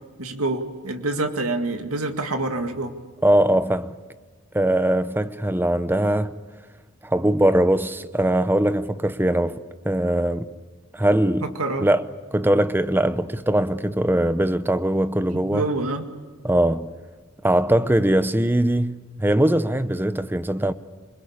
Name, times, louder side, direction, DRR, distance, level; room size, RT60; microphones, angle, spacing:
voice 1, 0.2-2.9 11.6-11.9 15.4-16.0, right 2 dB, 80° right, 2.1 m, -26 dB
voice 2, 3.2-3.9 4.5-6.3 7.0-9.6 9.8-10.5 10.9-11.5 11.8-12.0 12.3-15.7 16.4-16.9 17.4-20.7, right 1 dB, 10° right, 0.8 m, -21 dB
27.5 x 21.0 x 8.6 m
head